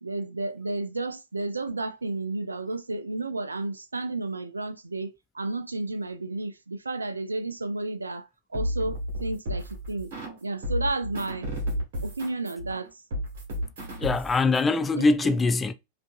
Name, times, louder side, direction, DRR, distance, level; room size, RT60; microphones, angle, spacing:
voice 1, 0.0-10.1 10.4-11.5 12.0-13.0 15.0-15.1, right 2 dB, 80° right, 0.4 m, -32 dB
sound 1, 8.5-10.4 10.6-14.6, equal, 55° right, 1.5 m, -32 dB
voice 2, 14.0-15.7, left 3 dB, 15° left, 0.3 m, -23 dB
5.0 x 2.5 x 2.2 m
figure-of-eight pair, 90°, 0 cm